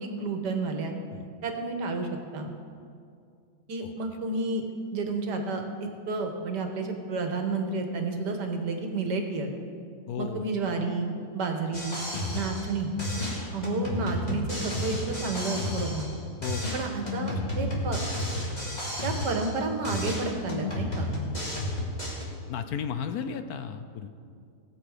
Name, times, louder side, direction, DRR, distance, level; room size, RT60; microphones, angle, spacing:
voice 1, 0.0-0.9 1.4-2.5 3.7-9.5 10.2-11.9 12.3-12.9 13.5-16.1 16.7-18.0 19.0-21.1, right 3 dB, 80° right, 4 dB, 1.9 m, -31 dB
voice 2, 10.1-10.5 11.7-11.8 16.4-16.7 17.6-17.8 21.5-21.6 22.5-24.1, left 7 dB, 70° left, 9 dB, 1.1 m, -34 dB
sound 1, 11.7-12.7 13.0-16.2 16.4-19.6 19.8-22.2, left 1 dB, 25° left, 2.5 m, -32 dB
19.5 x 7.7 x 4.9 m, 2.3 s
omnidirectional pair, 1.8 m